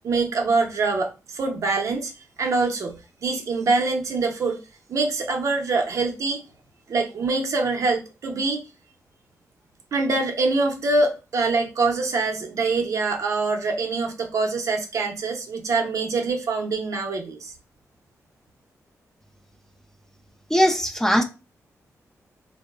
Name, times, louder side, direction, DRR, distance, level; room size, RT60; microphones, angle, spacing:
voice 1, 0.0-2.1 2.4-4.6 4.9-6.4 6.9-8.6 9.9-17.5, right 3 dB, 65° right, 0.6 m, -24 dB
voice 2, 20.5-21.2, equal, 5° left, 0.4 m, -19 dB
2.9 x 2.0 x 2.3 m
cardioid pair, 95°, 6 cm